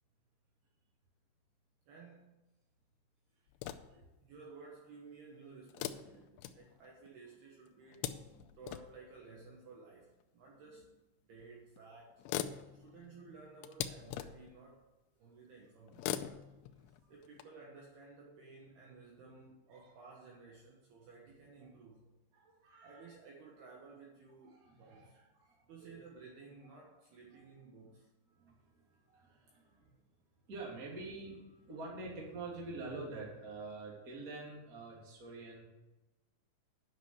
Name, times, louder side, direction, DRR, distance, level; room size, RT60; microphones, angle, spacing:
voice 1, 1.9-2.4 4.2-8.3 8.6-10.9 11.2-12.2 12.5-14.8 15.2-16.2 17.1-22.2 22.8-25.2 25.5-28.1, right 4 dB, 65° right, -1 dB, 2.7 m, -55 dB
sound 1, 3.5-4.1 5.7-7.1 7.7-9.0 10.2-10.3 11.4-11.5 11.8-11.9 12.1-14.6 15.9-17.4, left 11 dB, 85° left, 2.6 m, -42 dB
voice 2, 3.7-4.0 6.7-6.8 8.0-8.6 19.7-19.9 22.3-23.1 24.4-26.0 27.3-27.4 28.3-29.9 30.4-35.6, right 3 dB, 25° right, -3 dB, 2.1 m, -47 dB
9.8 x 6.2 x 8.0 m, 1.1 s
omnidirectional pair, 5.8 m